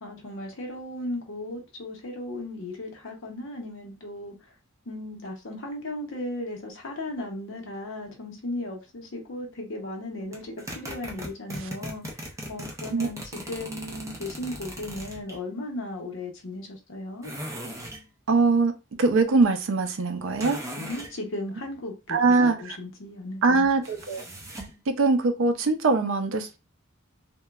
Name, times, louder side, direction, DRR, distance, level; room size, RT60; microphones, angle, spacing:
voice 1, 0.0-4.3 4.9-17.3 20.7-23.7, left 1 dB, 65° left, 0.7 m, -36 dB
sound 1, 10.3-15.4 17.2-18.0 20.4-21.1 23.8-24.8, equal, 15° right, 0.5 m, -38 dB
voice 2, 18.3-18.7 19.0-20.6 22.1-22.8 23.4-24.2 24.9-26.6, right 3 dB, 65° right, 0.5 m, -22 dB
2.9 x 2.2 x 2.2 m
head